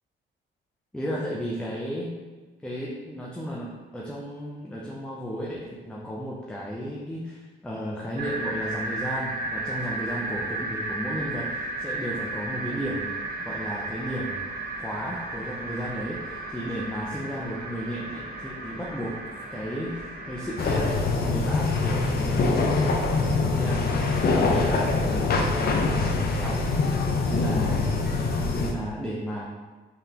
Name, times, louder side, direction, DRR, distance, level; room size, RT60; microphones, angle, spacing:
voice 1, 0.9-2.2 2.6-19.2 19.5-23.0 23.5-26.7 27.3-27.9 28.4-29.4, equal, 5° left, -4 dB, 0.5 m, -34 dB
sound 1, 8.2-20.9, right 2 dB, 50° right, 0.7 m, -34 dB
sound 2, 20.6-28.7, left 3 dB, 50° left, 0.6 m, -24 dB
3.9 x 3.2 x 2.9 m, 1.3 s
cardioid pair, 90°, 20 cm